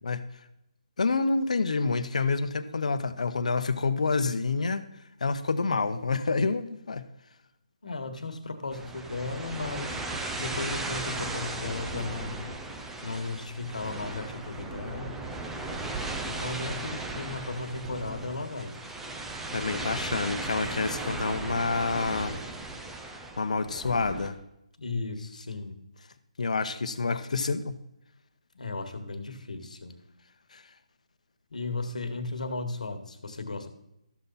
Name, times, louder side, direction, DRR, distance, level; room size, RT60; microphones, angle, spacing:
voice 1, 1.0-4.8 5.2-7.0 19.5-22.4 23.4-24.4 26.4-27.7 30.5-30.6, left 4 dB, 70° left, 10 dB, 0.9 m, -28 dB
voice 2, 7.8-10.0 10.4-12.5 13.0-15.2 16.2-18.8 24.8-25.8 28.5-29.9 31.5-33.7, left 3 dB, 90° left, 7 dB, 1.5 m, -35 dB
sound 1, 8.7-24.3, right 2 dB, 5° right, 0.5 m, -36 dB
13.0 x 7.0 x 4.1 m, 0.85 s
hypercardioid pair, 165°, 4 cm